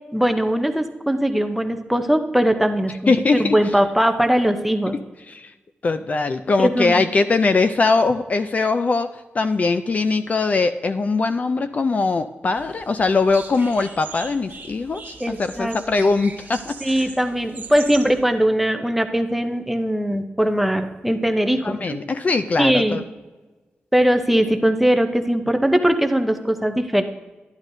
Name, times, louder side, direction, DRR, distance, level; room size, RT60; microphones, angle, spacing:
voice 1, 0.1-5.0 6.6-7.1 15.2-15.8 16.8-22.0 22.6-23.0 23.9-27.0, equal, 5° right, 6 dB, 0.6 m, -20 dB
voice 2, 3.1-3.6 4.9-5.0 5.3-5.5 5.8-17.0 21.6-23.0, left 3 dB, 40° left, 10 dB, 0.3 m, -21 dB
sound 1, 12.6-18.2, right 4 dB, 55° right, 1.4 m, -39 dB
11.0 x 11.0 x 2.6 m, 1.2 s
wide cardioid pair, 145°, 4 cm